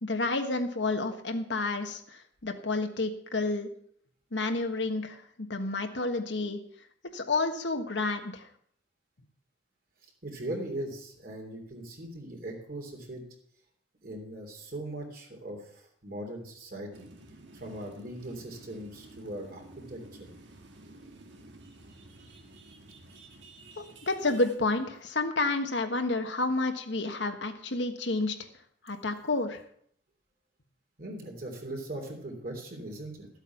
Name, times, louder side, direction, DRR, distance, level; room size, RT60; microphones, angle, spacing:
voice 1, 0.0-3.7 4.3-6.6 7.1-8.5 23.8-28.3 28.8-29.6, left 2 dB, 70° left, 6 dB, 1.3 m, -30 dB
voice 2, 10.2-13.2 14.0-17.1 17.5-20.3 31.0-33.3, right 1 dB, 50° right, 1 dB, 3.1 m, -40 dB
sound 1, 16.9-24.6, right 2 dB, 70° right, 1.7 m, -52 dB
13.0 x 8.2 x 5.9 m, 0.64 s
head